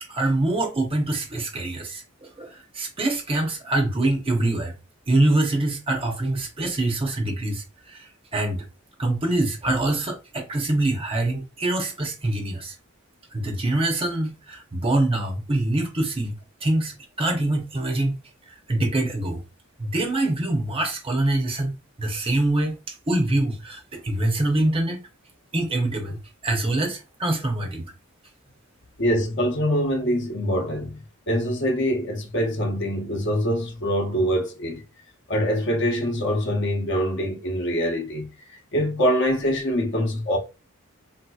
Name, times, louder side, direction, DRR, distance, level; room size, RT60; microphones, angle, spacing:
voice 1, 0.1-4.7 5.1-8.6 9.0-12.7 13.3-16.3 16.6-18.1 18.7-19.4 19.8-21.7 22.0-25.0 25.5-27.9, right 2 dB, 25° right, 0.7 m, -24 dB
voice 2, 29.0-34.8 35.3-40.4, equal, 55° left, 0.8 m, -24 dB
3.7 x 2.7 x 2.3 m
head